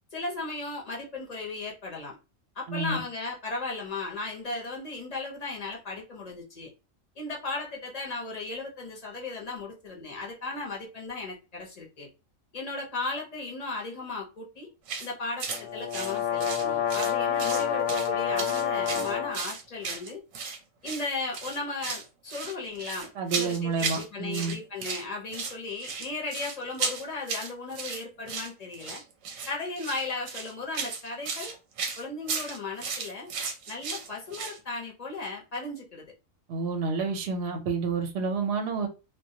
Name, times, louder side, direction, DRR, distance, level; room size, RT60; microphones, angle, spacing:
voice 1, 0.1-2.2 2.6-6.7 7.2-12.1 12.5-14.7 15.0-20.2 20.8-23.1 23.4-29.0 29.5-31.5 32.0-33.3 33.7-36.0, left 3 dB, 40° left, 0.6 m, -36 dB
voice 2, 2.7-3.0 23.2-24.5 36.5-38.9, right 4 dB, 65° right, 0.7 m, -29 dB
sound 1, 14.9-15.1 15.4-15.6 15.9-17.1 17.4-18.1 18.4-20.6 20.8-21.1 21.3-22.1 22.3-24.1 24.3-25.0 25.3-34.6, right 5 dB, 85° right, 1.0 m, -34 dB
sound 2, 15.5-19.4, left 8 dB, 70° left, 0.8 m, -28 dB
2.2 x 2.1 x 2.6 m
omnidirectional pair, 1.4 m